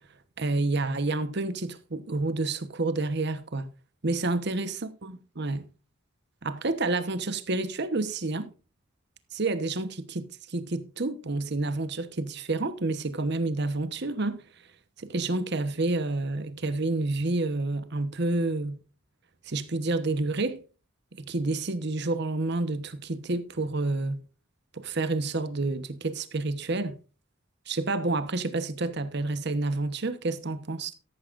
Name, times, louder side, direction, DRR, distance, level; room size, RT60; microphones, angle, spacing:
voice 1, 0.4-3.7 4.0-5.7 6.4-8.5 9.3-14.4 15.0-18.8 19.5-20.6 21.2-24.2 24.7-27.0 27.7-30.9, right 2 dB, 55° right, 1.1 m, -29 dB
13.5 x 11.5 x 2.5 m
head